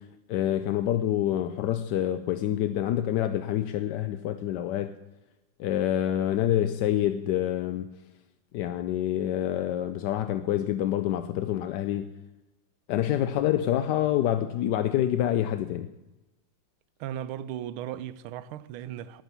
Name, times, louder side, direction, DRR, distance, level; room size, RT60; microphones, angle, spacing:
voice 1, 0.0-4.9 5.6-7.9 8.5-12.1 12.9-15.9, left 11 dB, 70° left, 1.0 m, -27 dB
voice 2, 17.0-19.2, right 11 dB, 85° right, 1.5 m, -36 dB
11.5 x 9.1 x 8.1 m
omnidirectional pair, 2.3 m